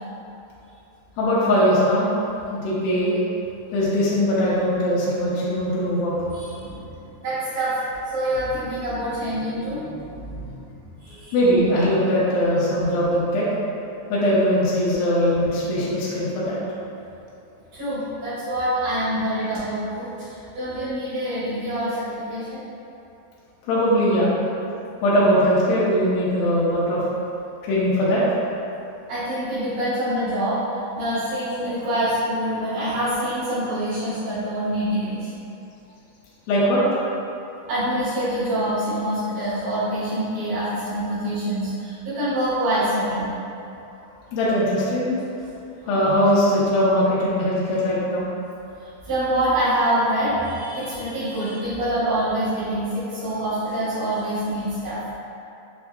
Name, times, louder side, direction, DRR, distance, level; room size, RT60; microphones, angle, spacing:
voice 1, 1.2-2.1 2.5-3.2 3.7-6.1 11.3-13.5 14.1-16.6 23.7-24.3 25.0-27.0 27.7-28.2 36.5-36.8 44.3-45.2 45.9-48.3, equal, 75° left, -8 dB, 2.0 m, -20 dB
voice 2, 6.3-7.8 8.1-11.4 17.7-22.6 29.1-30.6 31.0-35.3 37.7-43.3 45.8-46.0 49.0-55.0, right 1 dB, 85° right, -15 dB, 3.1 m, -26 dB
6.5 x 2.7 x 2.2 m, 2.8 s
omnidirectional pair, 3.5 m